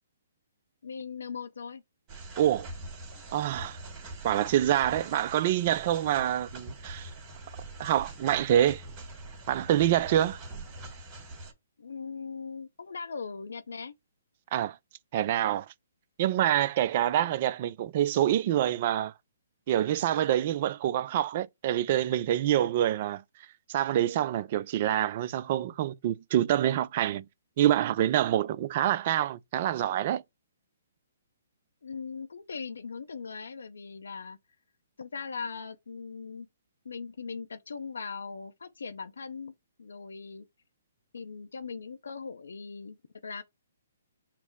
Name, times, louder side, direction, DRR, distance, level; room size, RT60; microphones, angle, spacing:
voice 1, 0.8-1.8 11.8-13.9 31.8-34.4 35.0-36.5 36.8-39.5 39.8-40.5 41.1-43.0 43.2-43.4, left 5 dB, 75° left, 0.5 m, -39 dB
sound 1, 2.1-11.5, right 2 dB, 25° right, 1.8 m, -44 dB
voice 2, 2.4-2.7 3.3-3.8 4.2-7.1 7.8-8.8 9.5-10.4 14.5-14.8 15.1-15.7 16.2-19.1 19.7-23.2 23.7-27.2 27.6-30.2, right 12 dB, 45° right, 0.3 m, -26 dB
5.7 x 2.0 x 4.5 m
hypercardioid pair, 140°, 0 cm